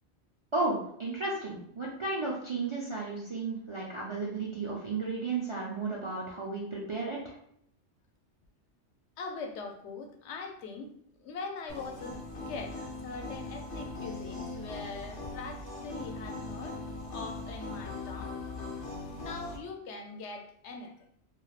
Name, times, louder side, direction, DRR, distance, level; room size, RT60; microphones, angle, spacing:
voice 1, 0.5-7.3, right 3 dB, 45° right, -5 dB, 0.4 m, -33 dB
voice 2, 9.2-10.9 11.2-16.8 17.1-18.3 19.2-21.1, left 4 dB, 85° left, 4 dB, 0.9 m, -42 dB
sound 1, 11.7-19.6, left 3 dB, 55° left, 1.0 m, -40 dB
3.2 x 2.3 x 2.3 m, 0.70 s
omnidirectional pair, 1.1 m